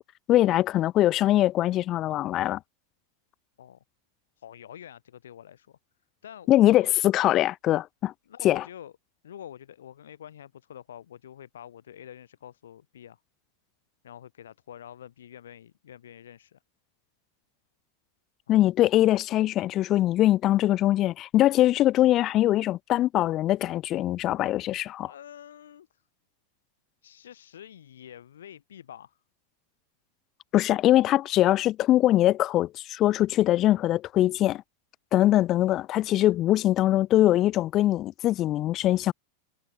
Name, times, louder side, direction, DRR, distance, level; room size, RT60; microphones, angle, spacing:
voice 1, 0.3-2.6 6.5-8.1 8.4-8.6 18.5-25.1 30.5-34.6 35.1-39.1, left 14 dB, 35° left, 0.5 m, -22 dB
voice 2, 4.4-5.8 6.2-6.9 8.3-8.9 9.2-13.2 14.0-16.6 18.5-18.6 25.0-26.0 27.0-29.2, left 10 dB, 65° left, 6.8 m, -47 dB
figure-of-eight pair, 90°, 0 cm